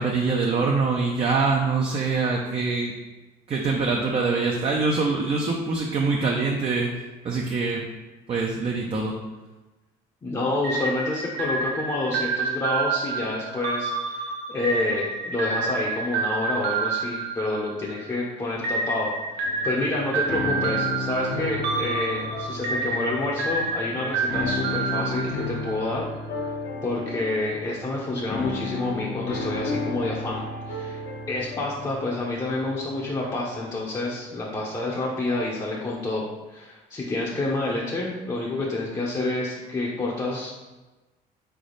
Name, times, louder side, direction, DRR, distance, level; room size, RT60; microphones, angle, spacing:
voice 1, 0.0-2.9 3.5-6.9 7.2-7.8 8.3-9.1, right 4 dB, 35° right, 0 dB, 0.5 m, -24 dB
voice 2, 10.2-26.1 26.8-31.0 31.3-40.5, left 2 dB, 25° left, -5 dB, 0.7 m, -28 dB
sound 1, 10.6-18.1 18.6-25.9, right 4 dB, 70° right, 0.7 m, -29 dB
sound 2, 19.4-35.7, left 3 dB, 70° left, 0.9 m, -34 dB
3.9 x 3.4 x 3.9 m, 1.2 s
cardioid pair, 110°, 17 cm